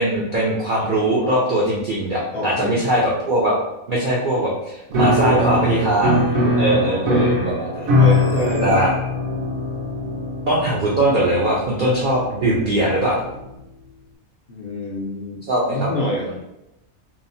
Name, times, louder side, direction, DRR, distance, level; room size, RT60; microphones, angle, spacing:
voice 1, 0.0-3.6 3.9-6.2 6.6-7.3 7.6-7.8 8.6-8.9 10.5-13.2 15.5-15.9, right 1 dB, 70° right, -5 dB, 0.5 m, -20 dB
voice 2, 2.3-2.8 5.0-5.7 6.5-8.9 14.5-15.4 15.7-16.3, left 1 dB, 60° left, -4 dB, 0.6 m, -26 dB
Piano, 4.9-13.4, left 1 dB, 85° right, 1.2 m, -22 dB
2.8 x 2.0 x 2.6 m, 0.88 s
omnidirectional pair, 1.4 m